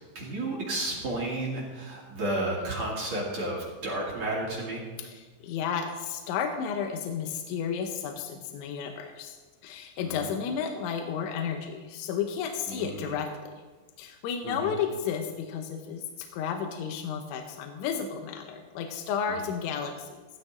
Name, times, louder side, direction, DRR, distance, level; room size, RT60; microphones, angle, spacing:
voice 1, 0.1-4.8 10.0-10.3 12.7-13.0 14.4-14.7, right 2 dB, 45° right, -4 dB, 2.5 m, -32 dB
voice 2, 5.0-9.4 9.6-13.5 14.0-20.2, left 7 dB, 80° left, 4 dB, 3.3 m, -32 dB
16.0 x 12.5 x 3.8 m, 1.3 s
omnidirectional pair, 5.4 m